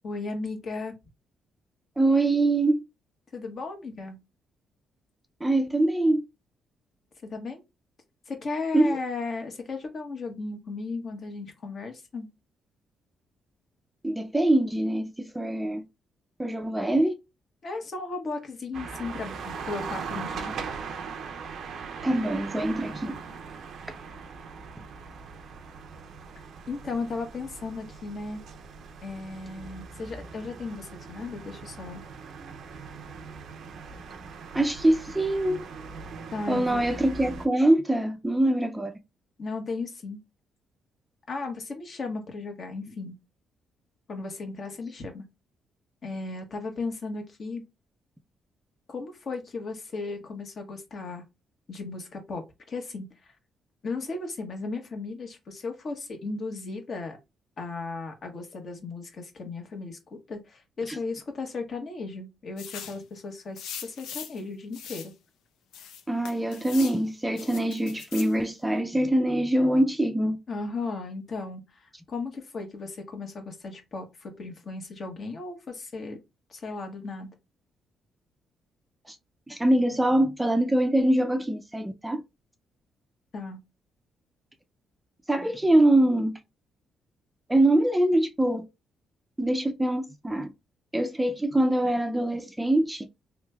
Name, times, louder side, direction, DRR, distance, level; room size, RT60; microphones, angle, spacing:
voice 1, 0.0-0.9 3.3-4.2 7.3-7.6 8.3-12.3 17.6-20.5 26.7-28.4 29.0-32.0 36.3-36.9 39.4-40.2 41.3-43.2 44.1-45.2 46.0-47.6 48.9-51.2 51.7-52.4 52.7-53.3 53.8-57.2 57.6-60.0 60.3-65.1 70.5-76.2 76.5-77.3 83.3-83.6, left 3 dB, 50° left, 1.1 m, -35 dB
voice 2, 2.0-2.8 5.4-6.2 8.7-9.0 14.0-15.8 16.4-17.2 22.0-23.2 34.5-35.6 36.5-39.0 60.9-61.0 66.1-70.4 79.1-79.2 79.5-82.2 85.3-86.4 87.5-88.7 89.4-90.5 90.9-93.1, right 1 dB, 10° right, 0.4 m, -24 dB
sound 1, 18.7-37.5, right 5 dB, 65° right, 0.5 m, -40 dB
sound 2, 62.6-63.0 63.6-64.4 64.7-65.1 65.7-67.0 67.4-68.3, left 8 dB, 85° left, 0.5 m, -40 dB
3.1 x 3.1 x 2.3 m
cardioid pair, 90°, 0 cm